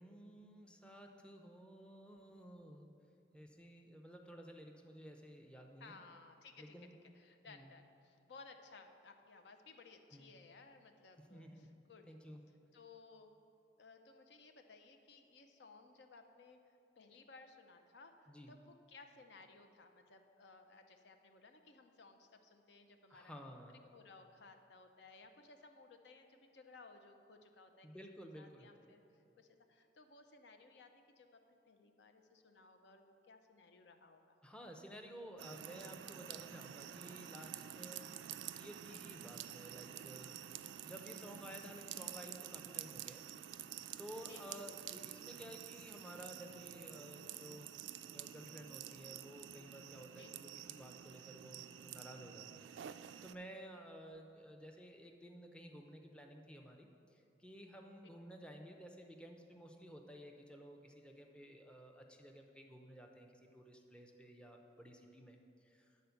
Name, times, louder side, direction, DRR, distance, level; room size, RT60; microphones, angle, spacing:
voice 1, 0.0-2.9 3.3-6.0 6.6-6.9 7.5-7.7 10.1-10.3 11.3-11.7 12.1-12.4 18.3-18.5 23.1-23.8 27.8-28.7 34.4-38.1 38.5-40.4 40.8-43.2 43.5-43.7 44.0-47.8 48.1-66.0, equal, 5° left, 2 dB, 0.5 m, -54 dB
voice 2, 5.8-6.7 7.1-12.0 12.7-13.3 13.8-16.6 17.0-18.6 18.9-23.3 23.8-27.9 28.3-34.3 44.3-44.6 50.2-50.3, left 4 dB, 70° left, 6 dB, 0.6 m, -60 dB
sound 1, 35.4-53.3, right 11 dB, 85° right, 0.3 m, -49 dB
9.3 x 4.3 x 6.9 m, 2.6 s
head